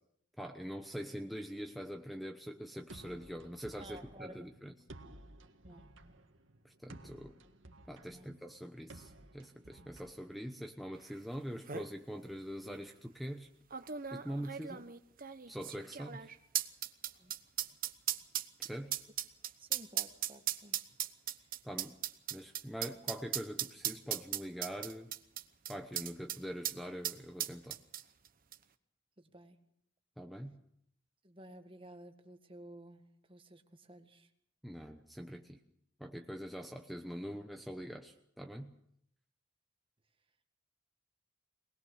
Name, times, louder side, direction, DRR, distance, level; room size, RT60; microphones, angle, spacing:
voice 1, 0.4-4.7 6.6-7.4 7.9-13.5 14.1-14.8 15.5-16.3 18.6-19.0 21.6-22.0 22.3-25.1 25.7-27.8 30.2-30.6 34.6-35.6 36.0-38.7, equal, ahead, 5 dB, 1.0 m, -44 dB
sound 1, 2.9-10.8, right 1 dB, 75° right, 1.9 m, -55 dB
voice 2, 3.8-4.5 5.6-5.9 8.1-8.3 17.2-17.3 19.6-20.8 29.2-29.6 31.2-33.0 33.3-34.3, right 1 dB, 25° right, 6 dB, 1.8 m, -53 dB
sound 2, 11.1-11.2 11.5-11.9 12.7-12.8 13.7-26.4 26.6-26.8 27.0-28.3 28.5-28.6, right 11 dB, 45° right, 1.0 m, -37 dB
23.0 x 20.0 x 6.5 m, 0.72 s
head